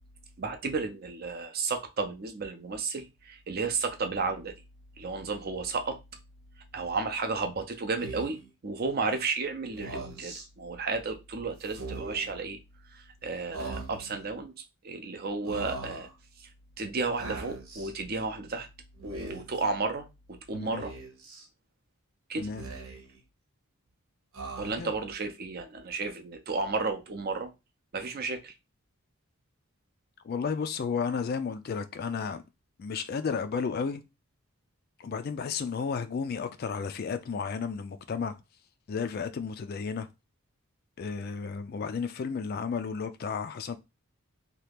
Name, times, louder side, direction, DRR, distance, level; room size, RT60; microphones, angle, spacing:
voice 1, 0.4-4.5 5.0-6.0 6.7-12.6 12.9-14.5 14.8-16.1 16.4-16.5 16.8-18.7 19.0-20.9 22.3-22.5 24.6-27.5 27.9-28.5, right 4 dB, 45° right, 0.5 m, -33 dB
Speech, 8.0-8.5 9.7-10.4 11.6-12.3 13.5-14.2 15.4-16.1 17.2-17.9 18.9-19.6 20.8-21.4 22.4-23.2 24.3-25.0, right 3 dB, 75° right, 1.0 m, -41 dB
voice 2, 20.5-20.8 22.4-22.6 24.8-24.9 30.2-32.4 32.8-34.0 35.0-38.4 38.9-40.1 41.0-43.8, left 5 dB, 45° left, 0.3 m, -33 dB
2.9 x 2.3 x 3.3 m
head